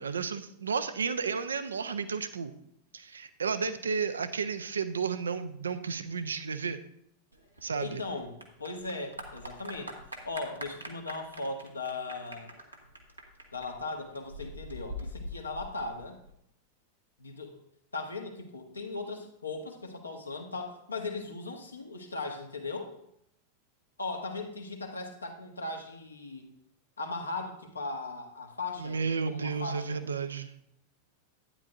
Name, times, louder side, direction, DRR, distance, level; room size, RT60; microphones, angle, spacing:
voice 1, 0.0-2.5 2.9-6.8 7.6-8.0 28.8-30.5, right 5 dB, 70° right, 11 dB, 0.6 m, -32 dB
Clapping / Applause, 7.3-16.3, equal, 85° right, 1.4 m, -44 dB
voice 2, 7.8-10.0 10.2-12.5 13.5-16.2 17.2-17.6 17.9-22.9 24.0-26.5 27.0-30.0, left 3 dB, 80° left, 3 dB, 1.4 m, -38 dB
12.0 x 9.5 x 2.5 m, 0.74 s
figure-of-eight pair, 90°, 0 cm